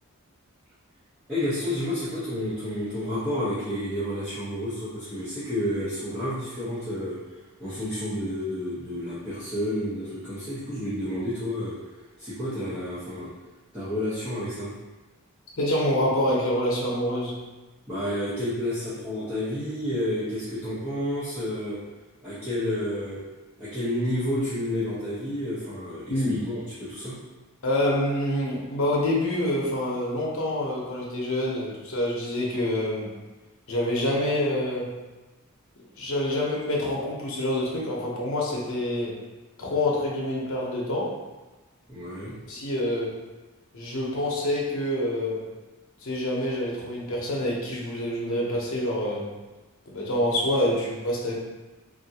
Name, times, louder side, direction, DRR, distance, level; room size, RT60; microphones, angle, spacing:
voice 1, 1.3-7.2 7.6-11.8 12.2-13.3 13.7-14.7 17.9-21.8 22.2-23.2 23.6-27.1 41.9-42.3, left 1 dB, 10° right, -15 dB, 0.8 m, -30 dB
voice 2, 15.6-17.4 26.1-26.4 27.6-33.1 33.7-34.9 36.0-39.2 39.6-41.1 42.5-43.2 43.7-45.4 46.0-49.3 49.9-51.3, left 1 dB, 65° left, -4 dB, 0.8 m, -26 dB
3.3 x 2.5 x 2.8 m, 1.1 s
head